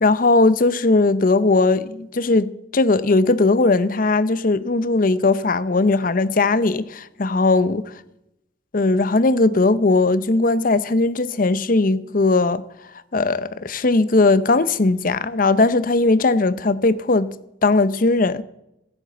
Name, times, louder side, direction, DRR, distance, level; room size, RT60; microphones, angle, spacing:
voice 1, 0.0-7.8 8.7-12.6 13.1-17.3 17.6-18.4, left 3 dB, 50° left, 0.7 m, -18 dB
15.0 x 8.0 x 8.8 m
head